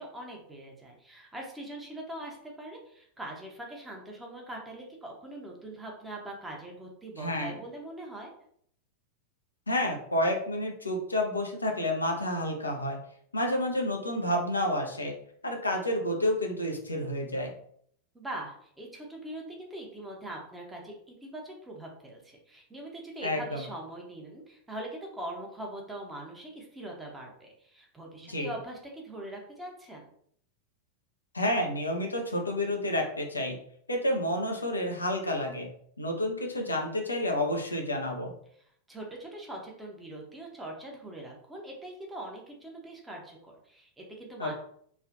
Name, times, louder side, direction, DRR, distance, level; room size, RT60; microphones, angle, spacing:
voice 1, 0.0-8.3 18.1-30.1 38.9-44.5, right 1 dB, 10° right, -1 dB, 0.8 m, -42 dB
voice 2, 7.2-7.6 9.7-13.0 13.3-15.1 15.4-17.5 23.2-23.7 28.3-28.5 31.3-33.5 33.9-35.7 36.0-38.3 44.4-44.5, left 1 dB, 80° left, 2 dB, 0.6 m, -29 dB
3.2 x 2.4 x 2.5 m, 0.64 s
figure-of-eight pair, 90°, 0 cm